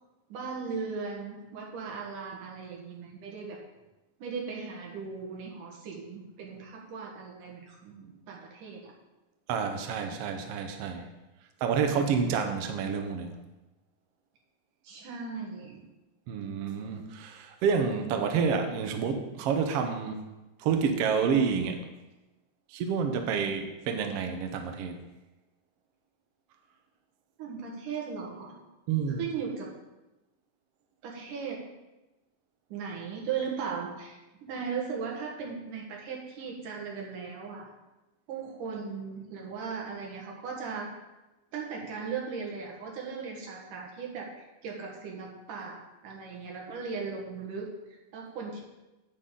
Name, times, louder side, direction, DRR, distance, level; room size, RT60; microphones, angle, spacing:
voice 1, 0.3-3.6 4.2-8.9 14.8-15.8 27.4-28.5 29.2-29.8 31.0-31.7 32.7-37.7 38.3-40.9 41.5-48.6, right 5 dB, 90° right, -1 dB, 3.2 m, -38 dB
voice 2, 9.5-11.1 11.6-13.3 16.3-20.2 20.6-21.8 22.7-25.0 28.9-29.2, right 6 dB, 65° right, 4 dB, 1.6 m, -29 dB
9.7 x 8.4 x 3.8 m, 1.0 s
omnidirectional pair, 3.5 m